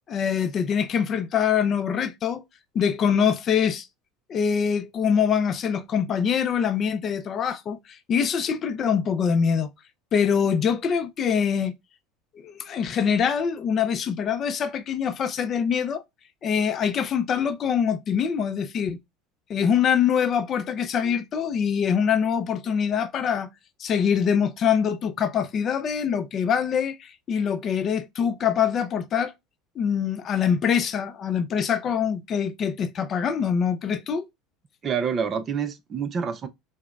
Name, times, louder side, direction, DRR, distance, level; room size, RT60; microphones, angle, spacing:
voice 1, 0.1-2.4 2.7-3.9 4.3-9.7 10.1-11.7 12.4-16.0 16.4-19.0 19.5-23.5 23.8-29.3 29.8-34.3, left 7 dB, 40° left, 0.4 m, -24 dB
voice 2, 34.8-36.5, right 6 dB, 35° right, 0.5 m, -27 dB
4.9 x 2.1 x 2.3 m
supercardioid pair, 100°, 0 cm